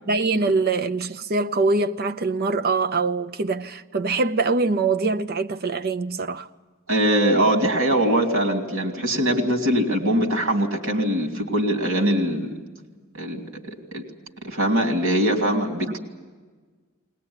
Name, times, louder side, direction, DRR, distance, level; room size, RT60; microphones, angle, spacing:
voice 1, 0.0-6.5, right 3 dB, 50° right, 0.7 m, -23 dB
voice 2, 6.9-12.6 13.1-14.0 14.4-16.0, right 1 dB, 65° right, 3.2 m, -22 dB
21.0 x 20.0 x 9.7 m
head